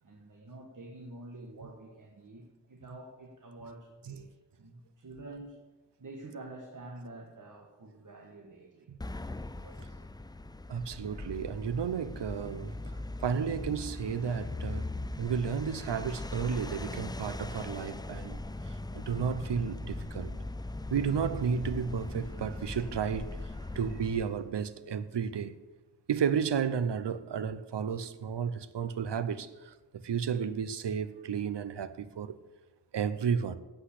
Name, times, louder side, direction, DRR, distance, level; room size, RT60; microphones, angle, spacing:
voice 1, 0.0-5.5 6.0-8.9 9.5-10.1, right 2 dB, 50° right, 1.4 m, -48 dB
sound 1, 9.0-24.5, left 2 dB, 10° left, 0.3 m, -40 dB
voice 2, 10.7-12.8 13.2-14.9 15.2-20.3 20.9-23.4 23.7-25.6 26.1-32.4 32.9-33.6, right 7 dB, 80° right, 0.7 m, -32 dB
8.6 x 7.9 x 8.1 m
wide cardioid pair, 90°, 41 cm